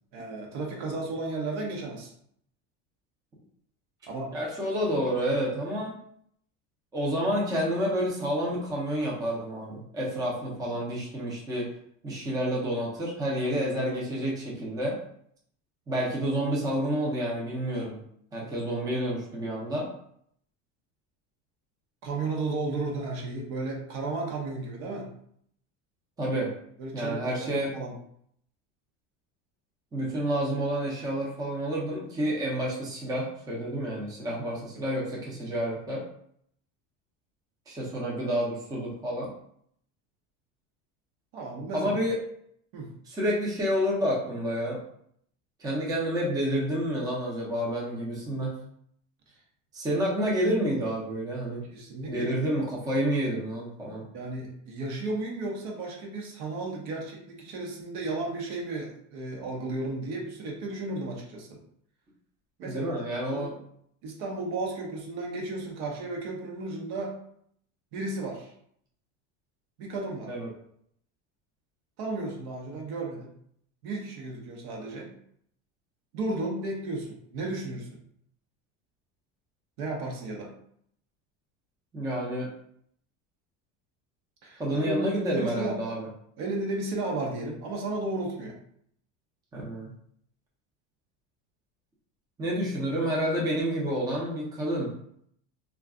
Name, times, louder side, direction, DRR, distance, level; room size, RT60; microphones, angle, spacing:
voice 1, 0.1-2.1 4.1-4.3 10.5-10.7 22.0-25.1 26.8-27.9 34.7-34.8 41.3-42.0 42.7-42.9 51.7-52.3 54.1-61.6 62.6-63.0 63.3-63.4 64.0-67.2 67.9-68.5 69.8-70.3 72.0-73.3 73.8-75.1 76.1-78.0 79.8-80.5 84.4-85.8 86.4-88.6, right 2 dB, 65° right, 0 dB, 0.9 m, -34 dB
voice 2, 4.3-6.0 6.9-11.7 12.0-15.0 15.9-18.0 18.3-19.9 26.2-26.6 26.9-27.7 29.9-36.0 37.7-39.3 41.7-42.2 43.1-44.8 45.6-48.6 49.7-51.6 52.1-54.1 62.6-63.6 70.3-70.5 81.9-82.5 84.6-86.1 89.5-89.9 92.4-94.9, equal, 10° right, -4 dB, 0.5 m, -29 dB
2.4 x 2.2 x 3.6 m, 0.67 s
cardioid pair, 145°, 37 cm